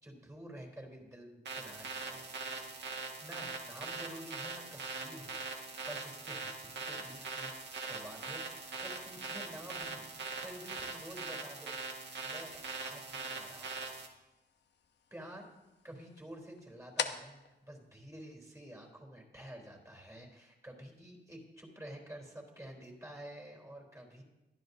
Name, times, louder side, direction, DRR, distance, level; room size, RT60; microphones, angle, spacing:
voice 1, 0.0-2.3 3.2-5.4 5.8-7.5 7.8-10.1 10.4-11.8 12.2-13.7 15.1-15.5 15.8-24.2, right 1 dB, 15° right, 0 dB, 3.6 m, -50 dB
sound 1, 1.4-14.1, right 4 dB, 80° right, 1.8 m, -42 dB
sound 2, 5.3-18.9, left 7 dB, 75° left, 0.9 m, -49 dB
21.5 x 12.5 x 2.7 m, 1.0 s
wide cardioid pair, 125°, 18 cm